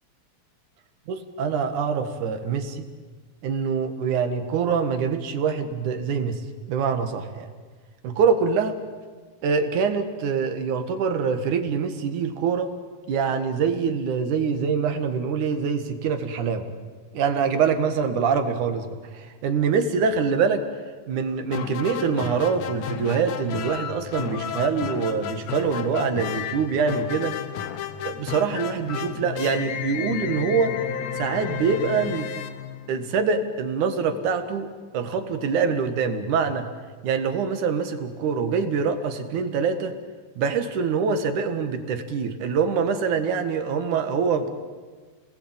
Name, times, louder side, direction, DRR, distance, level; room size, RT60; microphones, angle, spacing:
voice 1, 1.1-2.9 3.4-6.4 6.7-7.5 8.0-8.8 9.4-12.7 13.1-16.6 17.1-20.6 21.1-27.3 28.0-30.8 31.1-32.3 32.9-34.7 34.9-36.7 37.0-39.9 40.4-44.5, right 5 dB, 90° right, 8 dB, 3.2 m, -24 dB
sound 1, 21.5-33.4, left 8 dB, 65° left, 2.2 m, -32 dB
29.5 x 20.0 x 8.8 m, 1.5 s
omnidirectional pair, 3.4 m